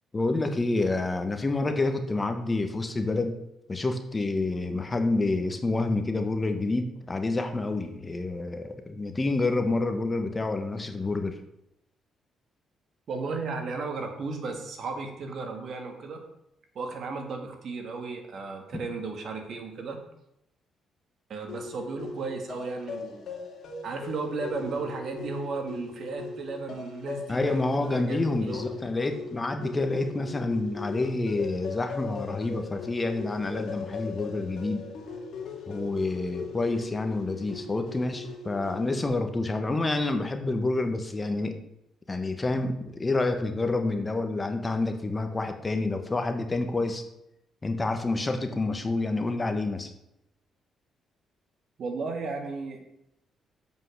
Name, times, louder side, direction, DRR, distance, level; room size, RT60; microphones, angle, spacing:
voice 1, 0.1-3.4 3.7-11.4 18.7-18.8 27.3-34.9 35.7-41.6 42.1-47.0 47.6-49.9, left 2 dB, 25° left, 6 dB, 1.2 m, -28 dB
voice 2, 13.1-16.2 16.8-20.0 21.3-23.3 23.8-28.6 51.8-52.8, right 4 dB, 60° right, 4 dB, 1.9 m, -35 dB
sound 1, 21.5-39.1, left 4 dB, 65° left, 2.3 m, -39 dB
7.6 x 5.6 x 6.5 m, 0.83 s
cardioid pair, 90°, 0 cm